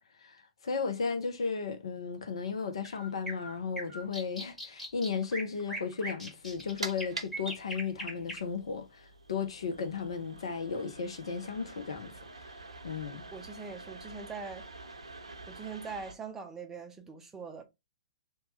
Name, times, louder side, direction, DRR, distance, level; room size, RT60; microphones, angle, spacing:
voice 1, 0.2-12.1 12.8-13.2, left 5 dB, 60° left, 0.6 m, -35 dB
sound 1, 2.8-8.4, right 1 dB, 5° left, 1.3 m, -40 dB
sound 2, 6.4-16.1, right 3 dB, 70° right, 0.6 m, -46 dB
voice 2, 13.3-14.6 15.5-17.6, right 5 dB, 10° right, 0.5 m, -42 dB
2.9 x 2.2 x 3.0 m
figure-of-eight pair, 115°, 3 cm